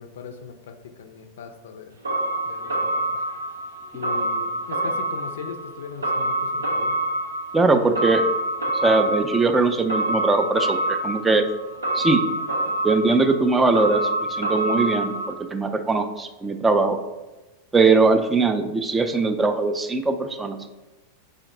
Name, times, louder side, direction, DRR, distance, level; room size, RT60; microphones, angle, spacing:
voice 1, 0.0-2.0 2.4-3.0 3.9-7.0, left 6 dB, 60° left, 6 dB, 0.4 m, -38 dB
sound 1, 2.0-15.3, right 1 dB, 75° right, 0.6 m, -26 dB
voice 2, 7.5-8.2 8.8-11.5 11.9-12.2 12.8-17.0 17.7-20.7, right 3 dB, 15° right, 6 dB, 0.3 m, -21 dB
5.1 x 2.1 x 3.7 m, 1.1 s
figure-of-eight pair, 90°, 0 cm